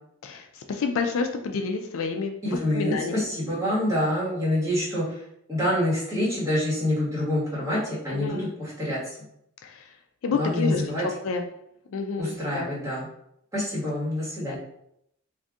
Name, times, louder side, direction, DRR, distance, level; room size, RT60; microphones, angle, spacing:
voice 1, 0.2-3.3 8.1-8.5 9.6-9.9 10.2-11.4 11.9-12.7 14.5-14.6, left 4 dB, 65° left, 4 dB, 0.4 m, -29 dB
voice 2, 2.4-5.2 5.5-9.2 10.4-11.0 12.2-13.1 13.5-14.6, left 1 dB, 15° right, -9 dB, 1.4 m, -26 dB
2.5 x 2.5 x 3.5 m, 0.75 s
head